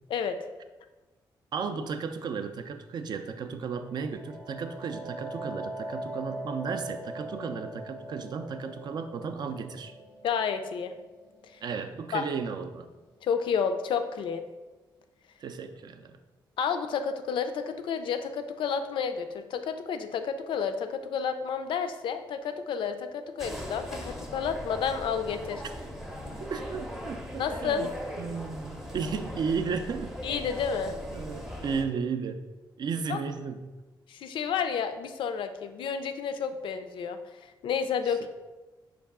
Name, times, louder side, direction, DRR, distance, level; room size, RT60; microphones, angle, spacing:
voice 1, 1.5-9.9 11.6-12.9 15.4-16.1 26.5-27.9 28.2-30.2 31.1-32.4 32.8-33.8 38.1-38.2, right 5 dB, 55° right, 8 dB, 0.3 m, -34 dB
sound 1, 3.8-13.3, right 1 dB, 80° right, 0.8 m, -42 dB
voice 2, 10.2-10.9 11.4-11.6 12.1-12.2 13.2-14.4 16.6-25.6 27.4-27.9 30.2-30.9 33.1-33.2 34.1-37.2 37.6-38.3, left 6 dB, 75° left, 8 dB, 0.3 m, -30 dB
sound 2, 23.4-31.9, equal, 5° right, 0.5 m, -39 dB
4.6 x 2.3 x 3.5 m, 1.2 s
cardioid pair, 95°, 9 cm